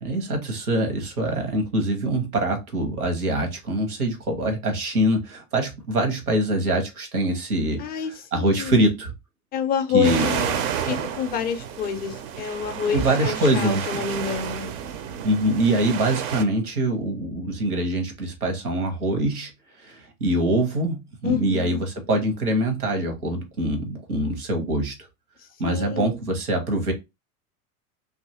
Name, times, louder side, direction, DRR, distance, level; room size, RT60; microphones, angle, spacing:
voice 1, 0.0-9.1 9.9-10.3 12.9-14.0 15.2-19.5 19.8-24.9 25.6-26.9, right 1 dB, 85° right, 1.0 m, -24 dB
voice 2, 7.8-8.9 9.5-10.5 10.8-14.7 21.2-21.8 25.7-26.2, left 8 dB, 25° left, 0.4 m, -28 dB
sound 1, 10.0-16.4, right 8 dB, 40° right, 0.4 m, -30 dB
2.6 x 2.4 x 2.6 m
figure-of-eight pair, 85°, 43 cm